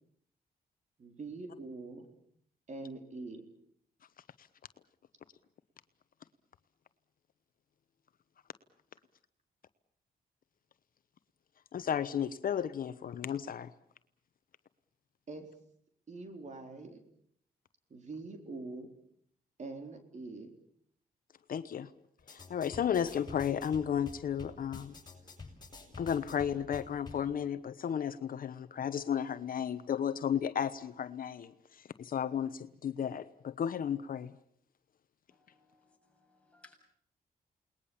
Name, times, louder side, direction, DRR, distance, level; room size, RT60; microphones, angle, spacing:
voice 1, 1.0-2.1 2.7-3.4 15.3-15.5 16.1-17.0 17.9-18.9 19.6-20.5, right 3 dB, 45° right, 4.1 m, -44 dB
voice 2, 11.7-13.7 21.5-21.9 22.3-25.0 26.0-34.3, left 8 dB, 60° left, 1.0 m, -34 dB
sound 1, 22.2-27.2, left 3 dB, 25° left, 7.2 m, -49 dB
voice 3, 35.3-36.7, left 2 dB, 10° left, 7.5 m, -63 dB
29.0 x 20.0 x 7.2 m
cardioid pair, 100°, 16 cm